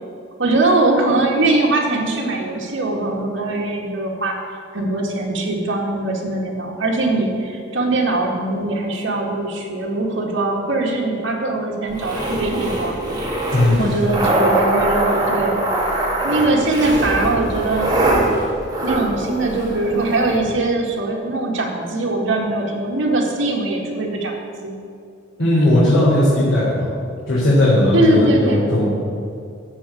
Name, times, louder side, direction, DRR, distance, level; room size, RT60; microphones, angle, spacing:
voice 1, 0.4-4.4 4.7-13.0 13.8-15.7 16.2-17.9 18.8-24.3 24.6-24.8 27.9-28.7, right 2 dB, 75° right, -1 dB, 2.1 m, -21 dB
sound 1, 11.9-20.4, right 1 dB, 20° right, 2.0 m, -22 dB
voice 2, 13.5-13.9 25.4-26.9 27.3-28.9, left 1 dB, 80° left, -9 dB, 3.1 m, -16 dB
14.0 x 4.8 x 8.7 m, 2.4 s
head